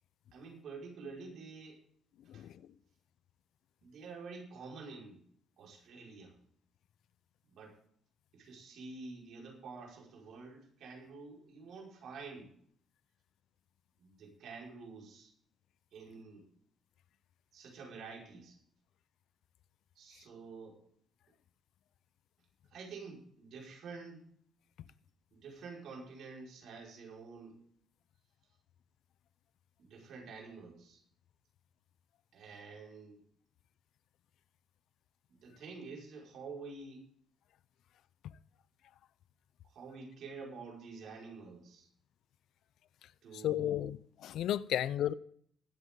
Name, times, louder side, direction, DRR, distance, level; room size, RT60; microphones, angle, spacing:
voice 1, 0.3-1.8 2.3-2.5 3.8-5.2 5.6-6.4 7.5-7.8 8.3-12.5 14.0-15.3 15.9-16.5 17.5-18.6 20.0-20.8 22.7-24.2 25.3-27.6 29.8-31.0 32.3-33.2 35.3-37.0 39.7-41.9 43.2-43.9, right 4 dB, 70° right, 5.2 m, -48 dB
voice 2, 43.3-45.1, left 11 dB, 80° left, 0.6 m, -33 dB
21.0 x 8.2 x 3.8 m
cardioid pair, 90°, 0 cm